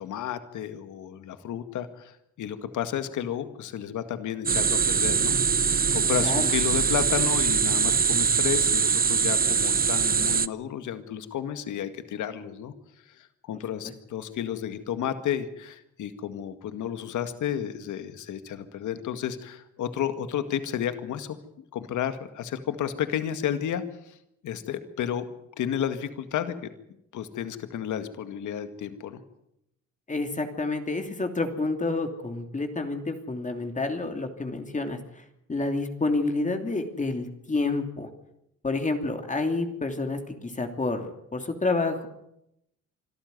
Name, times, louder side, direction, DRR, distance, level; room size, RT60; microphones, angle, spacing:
voice 1, 0.0-5.4 5.9-12.7 13.1-24.2 24.4-25.2 25.6-26.5 27.1-29.2, left 9 dB, 75° left, 9 dB, 2.0 m, -32 dB
sound 1, 4.5-10.5, right 6 dB, 30° right, 0.8 m, -23 dB
voice 2, 5.9-6.5 13.8-13.9 30.1-35.2 35.5-38.1 38.6-42.1, left 3 dB, 25° left, 5 dB, 2.9 m, -29 dB
25.5 x 13.5 x 9.5 m, 0.82 s
cardioid pair, 90°, 30 cm